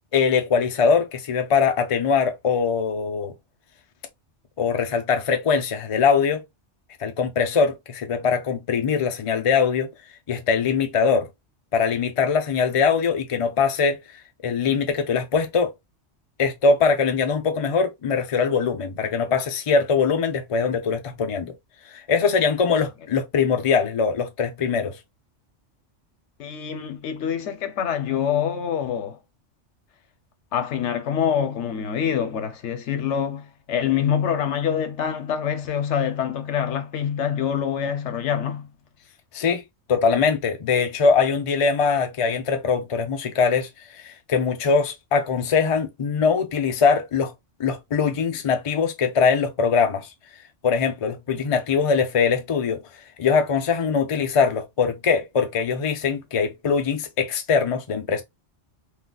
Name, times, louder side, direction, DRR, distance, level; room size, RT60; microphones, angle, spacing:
voice 1, 0.1-3.3 4.6-6.4 7.0-9.9 10.3-11.3 11.7-14.0 14.4-15.7 16.4-21.5 21.9-25.0 39.3-39.6 39.9-47.3 47.6-50.1 50.6-52.8 53.2-58.2, left 5 dB, 40° left, 0.5 m, -22 dB
voice 2, 26.4-29.2 30.5-38.7, left 8 dB, 75° left, 1.0 m, -25 dB
3.8 x 2.4 x 2.2 m
omnidirectional pair, 1.2 m